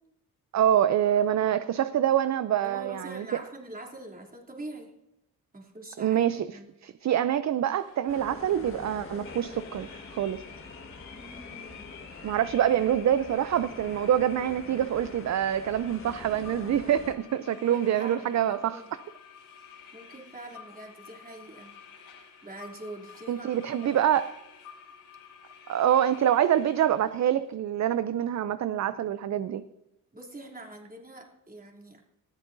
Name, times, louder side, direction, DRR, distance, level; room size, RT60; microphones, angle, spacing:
voice 1, 0.5-3.3 6.0-10.4 12.2-18.8 23.3-24.3 25.7-29.6, right 10 dB, 50° right, 0.5 m, -26 dB
voice 2, 2.6-5.0 5.5-6.7 11.1-12.0 17.5-18.8 19.9-21.7 22.4-23.9 30.1-32.0, right 1 dB, 25° right, 3.1 m, -44 dB
sound 1, 7.7-27.4, left 7 dB, 85° left, 5.4 m, -50 dB
sound 2, 8.1-17.2, left 3 dB, 35° left, 1.6 m, -45 dB
19.0 x 13.5 x 2.7 m
cardioid pair, 70°, 37 cm